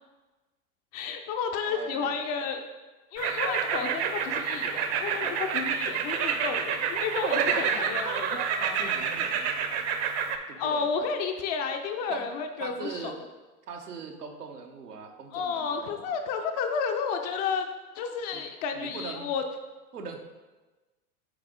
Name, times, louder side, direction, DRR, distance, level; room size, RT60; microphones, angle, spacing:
voice 1, 0.9-2.7 3.1-8.4 10.6-13.1 15.3-17.7 18.0-19.4, left 5 dB, 30° left, 5 dB, 0.4 m, -31 dB
voice 2, 1.6-2.1 7.4-7.8 8.6-9.7 10.5-10.9 12.1-12.3 12.6-13.2 13.7-16.2 18.3-18.5 18.7-19.3 19.9-20.2, right 5 dB, 85° right, 4 dB, 1.1 m, -40 dB
sound 1, 3.2-10.4, right 6 dB, 45° right, 0.8 m, -28 dB
8.5 x 4.0 x 3.7 m, 1.2 s
hypercardioid pair, 105°, 46 cm